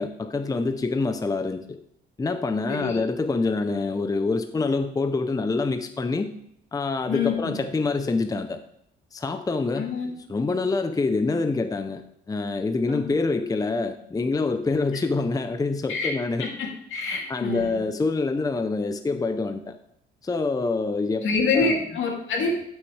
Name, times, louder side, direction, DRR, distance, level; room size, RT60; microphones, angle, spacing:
voice 1, 0.0-1.8 2.2-6.3 6.7-8.6 9.1-9.9 10.3-12.0 12.3-16.5 17.1-19.8 20.2-21.3 21.5-21.8, left 3 dB, 20° left, 8 dB, 0.6 m, -26 dB
voice 2, 7.1-7.6 9.7-10.1 12.9-13.0 15.9-16.1 16.4-17.7 21.2-22.5, left 4 dB, 75° left, -1 dB, 2.6 m, -26 dB
11.0 x 6.3 x 3.2 m, 0.74 s
cardioid pair, 90°, 20 cm